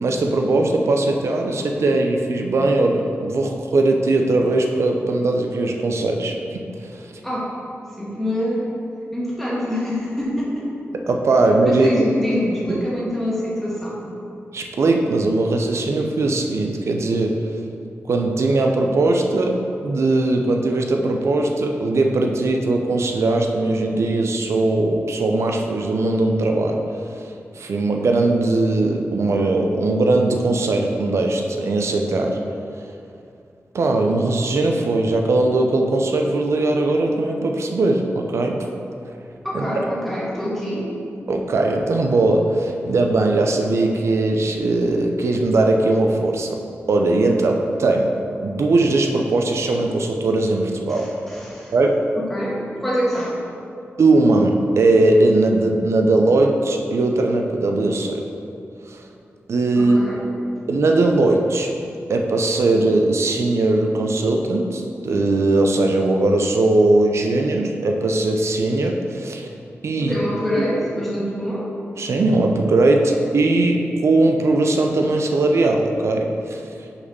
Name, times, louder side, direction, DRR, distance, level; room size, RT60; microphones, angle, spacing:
voice 1, 0.0-7.1 11.1-12.1 12.7-12.9 14.5-17.4 18.1-26.8 27.2-27.3 27.6-32.4 33.7-38.7 39.5-39.7 41.3-46.6 46.9-48.1 48.4-51.1 51.7-52.0 54.0-58.2 58.9-59.0 59.5-60.0 60.7-61.7 62.1-69.5 69.8-70.2 72.0-76.6, right 2 dB, 70° right, 3 dB, 0.5 m, -19 dB
voice 2, 8.0-8.6 9.1-10.7 11.6-14.0 39.4-40.9 50.9-51.7 52.2-53.3 59.7-60.2 70.0-71.7, equal, 5° left, -6 dB, 1.5 m, -25 dB
5.6 x 4.2 x 5.4 m, 2.6 s
wide cardioid pair, 115°, 5 cm